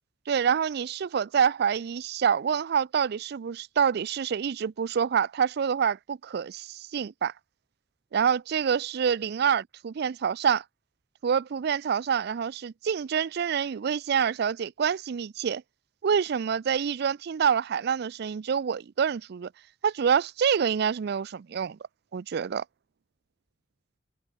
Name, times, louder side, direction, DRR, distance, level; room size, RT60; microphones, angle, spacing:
voice 1, 0.3-7.3 8.1-10.6 11.2-15.6 16.0-19.5 19.8-21.8 22.1-22.6, right 7 dB, 60° right, 0.4 m, -27 dB
head